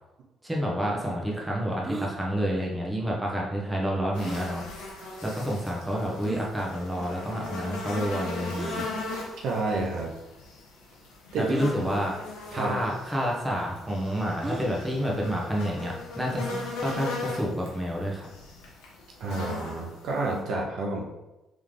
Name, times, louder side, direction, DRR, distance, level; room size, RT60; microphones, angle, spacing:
voice 1, 0.4-4.6 5.2-8.9 11.4-12.1 12.5-16.5 16.8-18.3, equal, 10° right, -3 dB, 1.3 m, -29 dB
sound 1, 1.8-2.1 4.2-4.5 5.3-5.4 6.2-6.5 8.5-8.9 9.9-10.0 11.5-11.8 12.7-12.9 13.1-13.2 14.4-14.7 16.4-16.8, right 3 dB, 25° right, 0.4 m, -36 dB
sound 2, 4.1-20.4, left 3 dB, 75° left, 0.9 m, -39 dB
voice 2, 9.4-10.1 11.3-11.5 12.5-12.7 19.2-21.1, right 3 dB, 65° right, -1 dB, 0.6 m, -29 dB
3.6 x 3.5 x 3.3 m, 1.0 s
hypercardioid pair, 55°, 0 cm